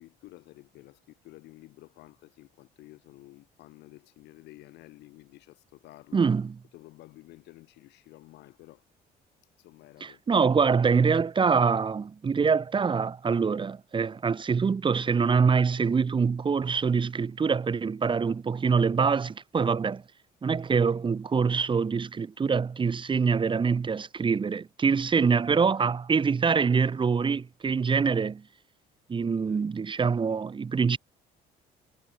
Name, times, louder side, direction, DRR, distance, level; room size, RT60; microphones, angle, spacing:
voice 1, 0.0-6.3 6.7-8.8 9.6-10.4 29.2-29.7, left 18 dB, 85° left, 4.9 m, -52 dB
voice 2, 6.1-6.5 10.0-20.0 20.4-28.4 29.1-31.0, right 5 dB, 30° right, 2.1 m, -25 dB
cardioid pair, 110°, 17 cm